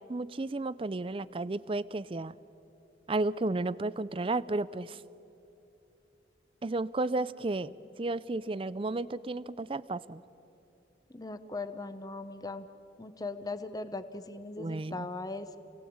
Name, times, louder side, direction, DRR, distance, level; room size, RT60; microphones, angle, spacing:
voice 1, 0.1-2.3 3.1-5.0 6.6-10.2 14.6-15.1, right 2 dB, 30° right, 18 dB, 0.4 m, -33 dB
voice 2, 11.1-12.7 13.0-15.6, left 3 dB, 20° left, 11 dB, 0.9 m, -39 dB
27.5 x 18.5 x 8.7 m, 3.0 s
head